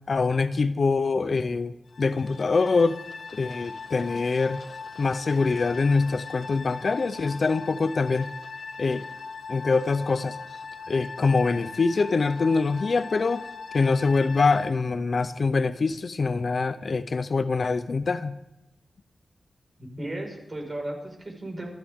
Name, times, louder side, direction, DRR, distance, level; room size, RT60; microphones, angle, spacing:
voice 1, 0.1-3.0 3.3-4.6 5.0-8.3 8.8-9.0 9.5-10.4 10.9-13.4 13.7-18.4, left 4 dB, 50° left, 12 dB, 0.6 m, -24 dB
sound 1, 1.9-14.7, left 4 dB, 75° left, 1.5 m, -39 dB
voice 2, 19.8-21.7, right 1 dB, 30° right, 0 dB, 5.0 m, -35 dB
26.0 x 14.5 x 3.6 m, 0.89 s
wide cardioid pair, 150°, 0 cm